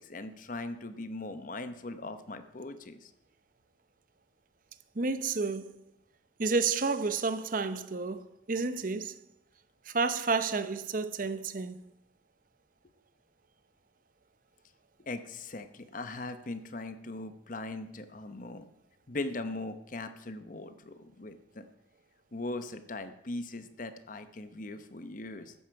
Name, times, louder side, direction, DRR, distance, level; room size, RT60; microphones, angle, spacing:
voice 1, 0.0-3.1 15.1-18.7 19.1-21.7 22.3-25.5, left 2 dB, 45° left, 0.9 m, -40 dB
voice 2, 5.0-5.7 6.4-9.1 9.9-11.8, right 4 dB, 45° right, 0.7 m, -30 dB
13.5 x 10.0 x 4.7 m
head